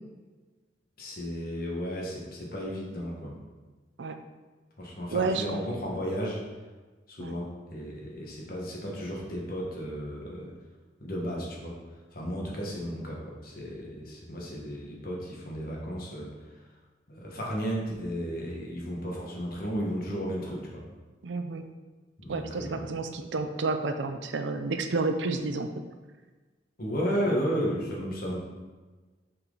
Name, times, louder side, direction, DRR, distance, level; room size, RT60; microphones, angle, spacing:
voice 1, 1.0-3.3 4.8-6.4 7.1-10.5 11.0-11.8 12.1-16.3 17.1-20.8 22.2-23.0 26.8-28.4, equal, 55° left, -3 dB, 1.5 m, -33 dB
voice 2, 5.1-5.6 7.2-7.3 21.2-21.7 22.3-25.8, right 3 dB, 85° right, 8 dB, 0.5 m, -30 dB
6.3 x 4.6 x 3.9 m, 1.3 s
head